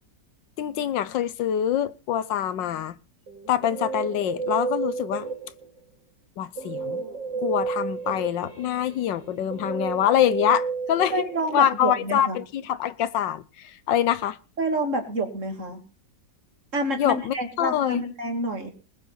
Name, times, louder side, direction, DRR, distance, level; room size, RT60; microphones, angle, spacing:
voice 1, 0.6-3.0 3.5-5.3 6.4-7.0 7.4-11.2 11.5-14.4 17.0-18.0, left 10 dB, 80° left, 1.6 m, -25 dB
Guitar, 3.3-5.8 6.6-12.0, right 5 dB, 85° right, 3.3 m, -32 dB
voice 2, 11.1-12.4 14.6-15.8 16.7-18.7, right 1 dB, 40° right, 3.0 m, -28 dB
20.0 x 7.9 x 5.8 m
omnidirectional pair, 1.9 m